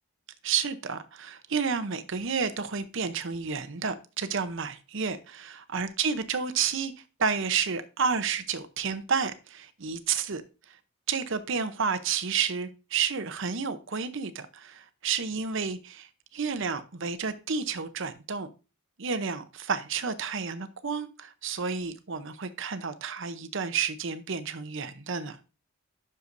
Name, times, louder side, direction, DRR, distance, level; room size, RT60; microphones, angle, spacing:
voice 1, 0.4-6.9 7.2-10.4 10.7-10.8 11.1-18.5 19.0-25.4, right 6 dB, 60° right, 0.8 m, -31 dB
11.0 x 6.7 x 2.6 m
head